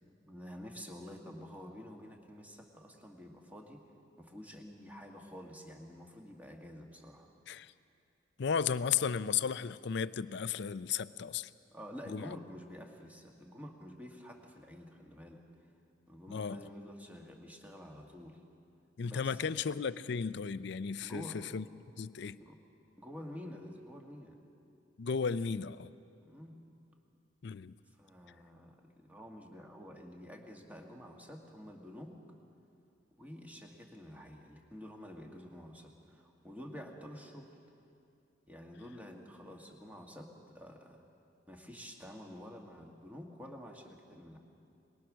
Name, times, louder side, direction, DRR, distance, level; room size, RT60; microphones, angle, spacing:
voice 1, 0.0-3.9 4.2-7.3 11.7-15.4 16.1-18.4 19.0-19.5 21.0-21.5 22.4-22.6 23.0-24.4 26.2-26.6 28.0-32.2 33.2-37.5 38.5-41.0 41.5-44.4, equal, 10° right, 1 dB, 1.8 m, -49 dB
voice 2, 8.4-11.5 12.1-12.4 16.3-16.6 19.0-21.6 22.0-22.4 25.0-25.9 27.4-27.7, left 6 dB, 65° left, 15 dB, 0.5 m, -34 dB
23.0 x 21.0 x 6.3 m, 2.6 s
head